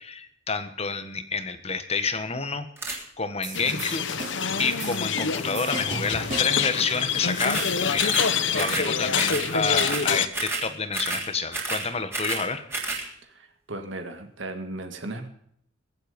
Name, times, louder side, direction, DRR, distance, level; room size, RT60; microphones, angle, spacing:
voice 1, 0.0-4.3 4.6-8.2 8.5-12.6, left 4 dB, 30° left, 10 dB, 1.4 m, -29 dB
sound 1, 2.8-3.0 7.4-7.7 8.0-8.3 8.6-8.9 9.1-9.5 9.7-10.1 10.3-10.7 10.9-11.3 11.5-12.5 12.7-13.0, right 3 dB, 15° right, 3.4 m, -30 dB
sound 2, 3.4-6.7, right 3 dB, 40° right, 3.5 m, -37 dB
sound 3, 3.5-10.3, left 6 dB, 70° left, 1.0 m, -26 dB
voice 2, 13.2-15.3, right 2 dB, 75° right, 6 dB, 2.0 m, -36 dB
23.5 x 8.0 x 5.2 m, 0.69 s
head